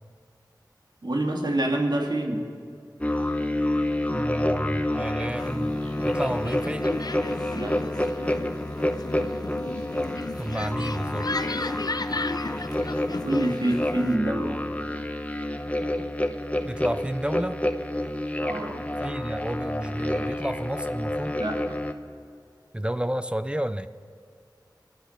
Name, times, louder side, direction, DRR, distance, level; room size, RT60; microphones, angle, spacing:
voice 1, 1.0-2.5 7.5-7.8 13.2-14.6 18.4-18.8 21.4-21.6, right 1 dB, 70° right, 1 dB, 2.2 m, -26 dB
sound 1, 3.0-21.9, left 1 dB, 20° left, 0.9 m, -29 dB
voice 2, 4.1-5.7 6.0-6.9 10.4-11.3 16.6-17.6 19.0-21.4 22.7-23.9, right 1 dB, 15° right, 12 dB, 0.5 m, -31 dB
sound 2, 5.4-14.2, left 3 dB, 60° left, 0.5 m, -35 dB
24.5 x 9.8 x 5.8 m, 2.4 s
wide cardioid pair, 50°, 8 cm